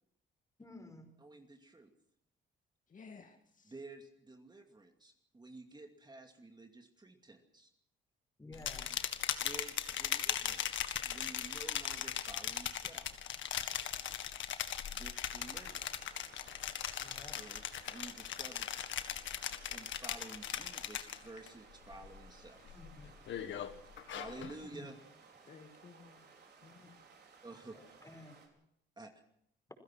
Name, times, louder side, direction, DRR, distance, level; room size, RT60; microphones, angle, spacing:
voice 1, 0.6-1.1 8.4-8.9 16.9-17.4 22.7-23.1 24.6-24.9 27.7-28.4, left 2 dB, 15° left, 6 dB, 5.3 m, -53 dB
voice 2, 1.2-1.9 3.6-7.7 9.4-13.2 14.9-15.8 17.3-18.7 19.7-22.8 24.1-25.0 27.4-27.8 29.0-29.1, right 2 dB, 20° right, 4 dB, 2.5 m, -52 dB
voice 3, 2.9-3.7 25.5-26.3 26.6-27.1, left 5 dB, 40° left, 5 dB, 2.1 m, -56 dB
sound 1, 8.5-21.5 21.8-22.3 22.7-24.6, left 10 dB, 70° left, 1.8 m, -39 dB
sound 2, 15.4-28.5, right 5 dB, 55° right, 5.1 m, -60 dB
27.5 x 16.0 x 6.1 m, 0.73 s
cardioid pair, 90°, 20 cm